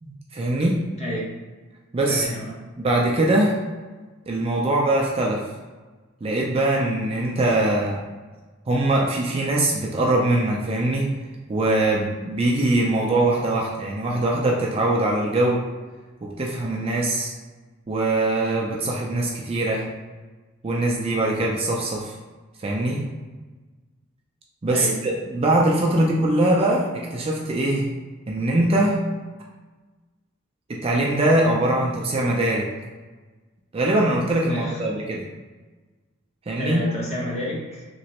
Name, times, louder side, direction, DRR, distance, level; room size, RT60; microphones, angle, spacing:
voice 1, 0.0-0.8 1.9-2.2 2.8-3.6 4.3-5.4 6.2-8.0 8.7-11.1 11.5-15.6 16.2-17.3 17.9-19.9 20.6-22.1 22.6-23.1 24.6-26.9 27.1-27.9 28.3-29.0 30.7-32.7 33.7-35.2 36.5-36.8, right 1 dB, 25° right, -2 dB, 0.4 m, -22 dB
voice 2, 1.0-1.3 2.1-2.6 24.7-25.0 25.9-26.1 34.5-34.8 36.6-37.9, left 1 dB, 30° left, -5 dB, 1.0 m, -30 dB
3.2 x 3.0 x 2.9 m, 1.3 s
head